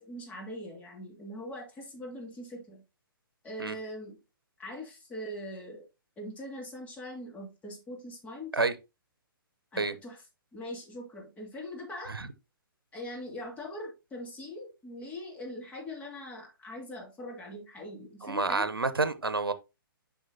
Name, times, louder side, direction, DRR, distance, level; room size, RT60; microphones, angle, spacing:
voice 1, 0.0-2.8 3.4-4.2 4.6-5.9 6.2-8.5 9.7-10.2 10.5-12.2 12.9-18.7, left 1 dB, 10° left, 2.3 m, -42 dB
voice 2, 18.2-19.5, right 3 dB, 80° right, 0.8 m, -29 dB
7.2 x 5.6 x 2.8 m
figure-of-eight pair, 125°, 12 cm